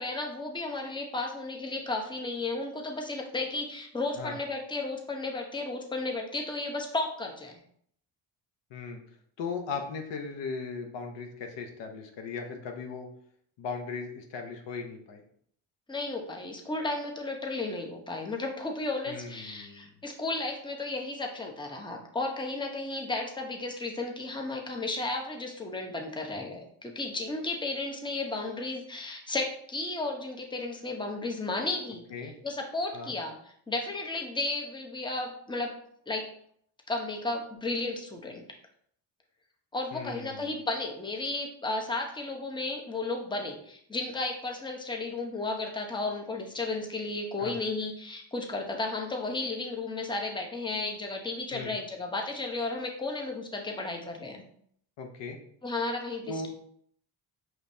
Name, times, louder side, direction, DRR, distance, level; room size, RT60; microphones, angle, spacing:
voice 1, 0.0-7.6 15.9-32.0 32.4-33.3 33.7-35.7 36.1-36.3 36.9-38.4 39.7-54.4 55.6-56.5, left 2 dB, 10° left, 2 dB, 0.8 m, -33 dB
voice 2, 9.4-13.1 13.6-15.2 19.1-19.9 32.1-32.3 32.9-33.2 39.9-40.5 47.4-47.6 51.5-51.8 55.0-55.4 56.3-56.5, left 4 dB, 70° left, 4 dB, 0.8 m, -38 dB
5.0 x 3.1 x 2.7 m, 0.65 s
supercardioid pair, 70°, 45 cm